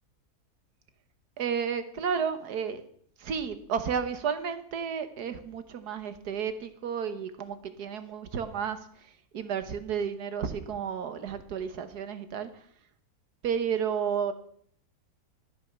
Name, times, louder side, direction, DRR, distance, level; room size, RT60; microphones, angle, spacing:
voice 1, 1.4-2.8 3.2-12.7 13.4-14.3, right 7 dB, 85° right, 10 dB, 1.7 m, -32 dB
13.5 x 8.7 x 6.1 m, 0.63 s
omnidirectional pair, 1.7 m